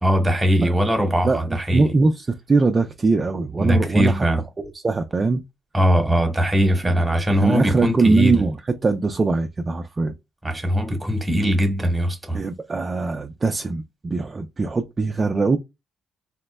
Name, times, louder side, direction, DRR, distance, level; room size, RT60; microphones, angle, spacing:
voice 1, 0.0-1.9 3.6-4.4 5.7-8.5 10.4-12.4, equal, 10° right, 1.1 m, -20 dB
voice 2, 1.7-4.1 4.6-5.4 7.4-8.5 8.8-10.1 12.3-15.6, right 3 dB, 30° right, 0.4 m, -21 dB
4.2 x 2.0 x 2.2 m
cardioid pair, 90°, 0 cm